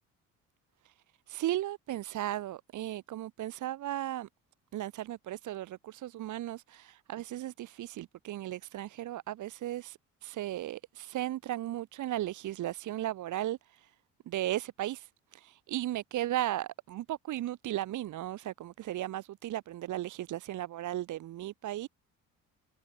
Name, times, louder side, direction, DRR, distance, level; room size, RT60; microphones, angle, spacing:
voice 1, 1.3-4.3 4.7-13.9 14.3-21.9, right 14 dB, 50° right, 0.8 m, -36 dB
hypercardioid pair, 55°, 38 cm